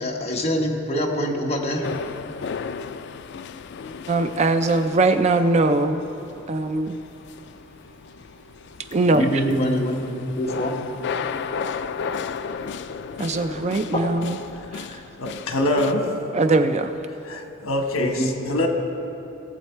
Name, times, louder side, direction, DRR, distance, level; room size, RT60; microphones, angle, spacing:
voice 1, 0.0-1.9 9.1-10.8 18.0-18.3, equal, 30° left, -1 dB, 1.2 m, -25 dB
sound 1, 1.8-15.9, left 6 dB, 55° left, 0.3 m, -34 dB
voice 2, 4.1-6.0 6.5-7.0 8.9-9.3 13.2-14.4 14.7-14.9 16.3-16.9, right 2 dB, 30° right, 8 dB, 0.4 m, -21 dB
voice 3, 14.5-16.1 17.2-18.7, left 1 dB, 80° left, 3 dB, 1.3 m, -25 dB
19.0 x 7.5 x 4.4 m, 2.8 s
head